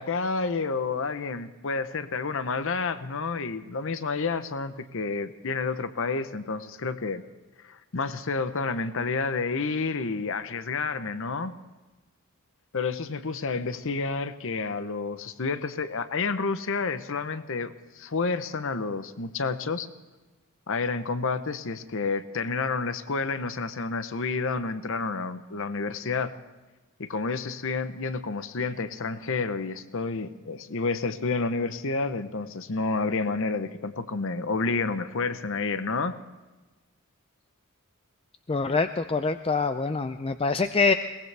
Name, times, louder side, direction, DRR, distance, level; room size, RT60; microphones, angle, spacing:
voice 1, 0.0-7.2 7.6-11.5 12.7-19.9 20.7-26.3 27.0-36.2, left 4 dB, 60° left, 11 dB, 0.8 m, -30 dB
voice 2, 38.5-40.9, left 4 dB, 25° left, 9 dB, 0.5 m, -25 dB
22.0 x 19.0 x 3.4 m, 1.2 s
head